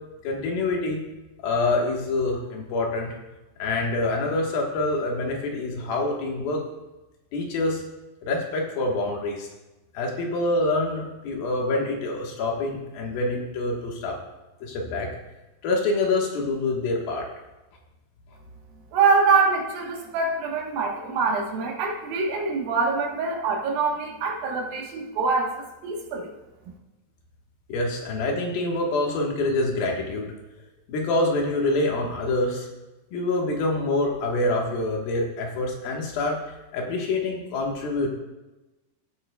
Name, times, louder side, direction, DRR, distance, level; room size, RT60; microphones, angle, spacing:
voice 1, 0.2-1.0 1.4-3.1 3.6-6.6 7.3-7.8 8.2-9.5 9.9-14.2 14.6-15.1 15.6-17.3 27.7-30.3 30.9-32.7 33.1-36.4 36.7-38.1, left 2 dB, 80° left, 0 dB, 3.2 m, -26 dB
voice 2, 18.9-26.3, right 4 dB, 80° right, 0 dB, 3.1 m, -24 dB
16.0 x 8.4 x 2.3 m, 1.0 s
omnidirectional pair, 4.1 m